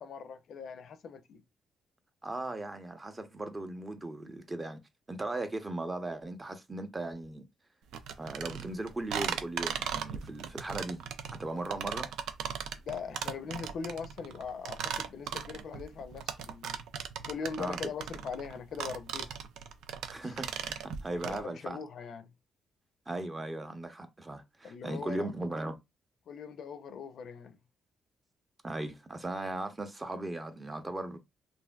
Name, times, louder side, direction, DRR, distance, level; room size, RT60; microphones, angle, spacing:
voice 1, 0.0-1.4 12.8-16.8 17.3-19.4 20.2-20.3 21.1-22.3 24.6-25.3 26.3-27.6, left 6 dB, 65° left, 0.4 m, -41 dB
voice 2, 2.2-4.8 5.1-7.4 8.2-11.0 11.3-12.1 17.6-17.8 20.1-21.8 23.1-25.8 28.6-31.2, right 2 dB, 20° right, 0.7 m, -37 dB
sound 1, 7.9-21.4, right 8 dB, 85° right, 0.4 m, -37 dB
3.3 x 2.5 x 2.2 m
cardioid pair, 90°, 0 cm